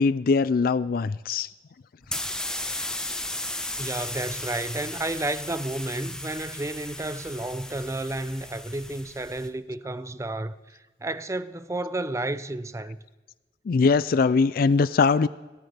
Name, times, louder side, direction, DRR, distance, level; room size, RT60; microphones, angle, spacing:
voice 1, 0.0-1.5 13.7-15.3, left 4 dB, 55° left, 0.4 m, -21 dB
sound 1, 2.0-9.5, left 1 dB, 5° left, 0.9 m, -35 dB
voice 2, 3.8-13.0, right 2 dB, 15° right, 0.5 m, -31 dB
18.0 x 17.5 x 3.4 m
head